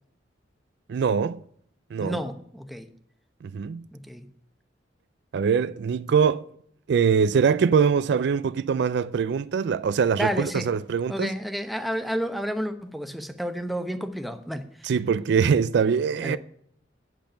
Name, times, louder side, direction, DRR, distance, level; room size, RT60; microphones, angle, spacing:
voice 1, 0.9-1.4 1.9-2.2 3.4-3.8 5.3-6.4 6.9-11.3 14.8-16.4, right 6 dB, 65° right, 0.3 m, -23 dB
voice 2, 2.0-2.9 3.9-4.3 10.1-10.7 11.1-14.6 16.2-16.4, equal, ahead, 0.8 m, -30 dB
8.6 x 8.1 x 5.1 m
head